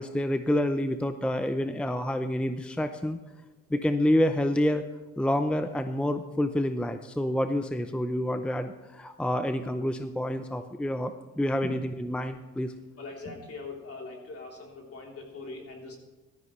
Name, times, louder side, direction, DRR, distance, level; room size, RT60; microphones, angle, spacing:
voice 1, 0.0-3.2 3.7-4.8 5.2-12.7, left 1 dB, 5° left, 8 dB, 0.6 m, -28 dB
voice 2, 13.0-16.0, left 3 dB, 50° left, -1 dB, 3.6 m, -41 dB
15.5 x 13.0 x 3.2 m, 1.1 s
cardioid pair, 90°, 30 cm